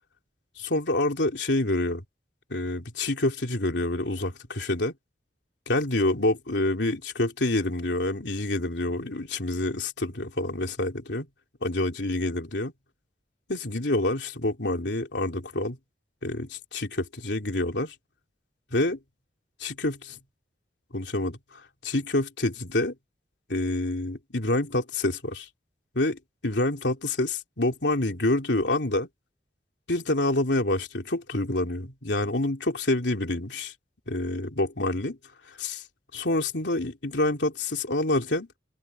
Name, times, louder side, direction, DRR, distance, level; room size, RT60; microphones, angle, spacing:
voice 1, 0.6-2.0 2.5-4.9 5.7-11.3 11.6-12.7 13.5-15.8 16.2-17.9 18.7-19.0 19.6-20.2 20.9-22.9 23.5-25.5 25.9-29.1 29.9-33.7 34.1-35.2 35.6-35.8 36.1-38.5, left 2 dB, 80° left, 3.2 m, -27 dB
open air
head